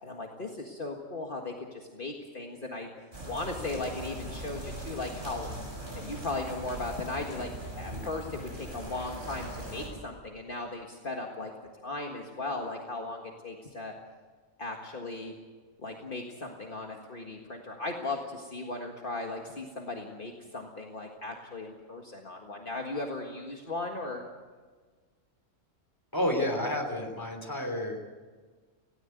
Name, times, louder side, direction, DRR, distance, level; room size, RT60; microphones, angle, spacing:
voice 1, 0.0-2.9 3.3-5.5 6.0-7.5 7.8-11.5 11.8-13.9 14.6-15.3 15.8-24.2, left 2 dB, 45° left, 1 dB, 1.9 m, -37 dB
sound 1, 3.1-9.9, right 1 dB, 40° right, 6.7 m, -40 dB
voice 2, 26.1-28.0, left 1 dB, 15° left, 4 dB, 3.1 m, -30 dB
18.0 x 17.0 x 9.2 m, 1.5 s
omnidirectional pair, 1.3 m